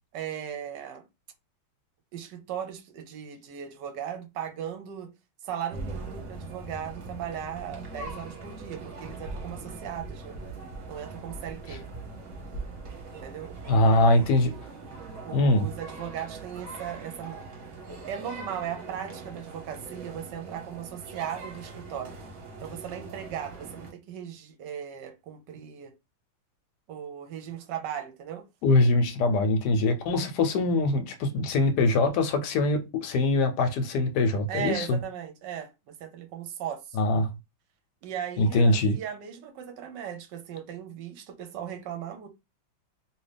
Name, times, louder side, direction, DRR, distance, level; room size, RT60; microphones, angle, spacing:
voice 1, 0.1-1.0 2.1-5.1 5.4-10.4 10.9-11.8 13.2-14.0 15.2-17.4 18.0-22.2 22.6-25.9 26.9-28.5 34.5-37.0 38.0-42.3, right 9 dB, 70° right, 1.1 m, -37 dB
sound 1, 5.7-23.9, right 3 dB, 50° right, 1.0 m, -41 dB
voice 2, 13.7-14.5 15.3-15.6 28.6-35.0 36.9-37.3 38.4-39.0, left 2 dB, 70° left, 1.1 m, -23 dB
2.9 x 2.8 x 3.3 m
omnidirectional pair, 2.2 m